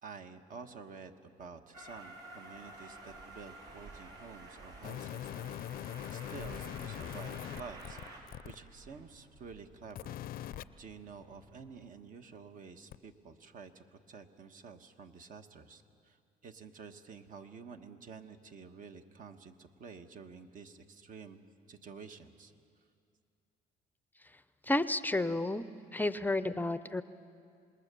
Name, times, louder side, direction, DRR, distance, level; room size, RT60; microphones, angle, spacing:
voice 1, 0.0-5.7 6.1-10.5 10.8-22.5, right 5 dB, 50° right, 7 dB, 1.4 m, -50 dB
Train, 1.7-8.2, right 2 dB, 70° right, 4.3 m, -50 dB
sound 1, 4.8-8.5 9.9-10.6 12.9-13.0, left 12 dB, 60° left, 0.5 m, -41 dB
sound 2, 6.7-11.8, right 1 dB, 90° right, 3.1 m, -60 dB
voice 2, 24.7-25.6 25.9-27.0, left 2 dB, 10° left, 13 dB, 0.6 m, -31 dB
26.5 x 20.5 x 6.9 m, 2.4 s
cardioid pair, 110°, 17 cm